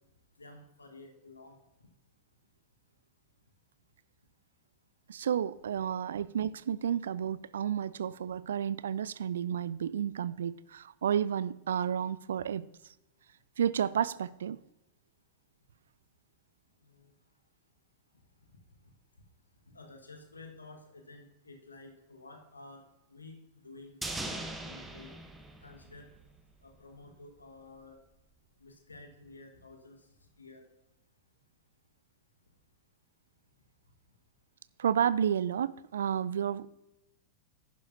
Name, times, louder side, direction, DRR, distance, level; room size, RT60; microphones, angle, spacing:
voice 1, 0.4-1.9 16.8-17.1 18.4-18.9 19.6-23.4 23.6-25.1 25.6-26.1 26.6-28.0 28.6-30.6 34.1-34.2, left 3 dB, 75° left, 1.5 m, -52 dB
voice 2, 5.1-12.7 13.6-14.6 34.8-36.7, right 9 dB, 65° right, 0.3 m, -31 dB
sound 1, 24.0-26.4 26.7-26.8, right 2 dB, 10° right, 1.2 m, -40 dB
10.5 x 10.5 x 2.7 m
figure-of-eight pair, 90°, 0 cm